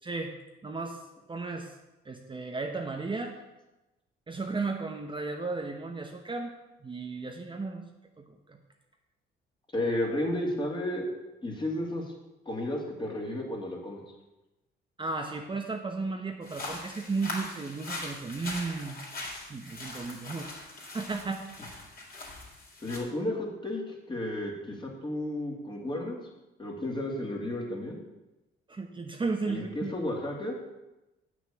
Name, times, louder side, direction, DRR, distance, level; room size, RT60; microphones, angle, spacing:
voice 1, 0.0-0.3 0.6-1.0 1.3-1.8 2.0-3.4 4.3-6.5 6.8-7.8 8.2-8.6 15.0-19.0 19.5-20.5 20.8-21.4 28.7-29.9, right 3 dB, 25° right, 3 dB, 0.9 m, -34 dB
voice 2, 9.7-11.1 11.4-12.1 12.5-14.0 22.8-26.2 26.6-28.0 29.5-30.5, left 1 dB, 25° left, -1 dB, 2.5 m, -32 dB
sound 1, 16.4-23.0, left 2 dB, 45° left, 3.3 m, -41 dB
8.0 x 6.2 x 7.0 m, 1.0 s
cardioid pair, 90°, 20 cm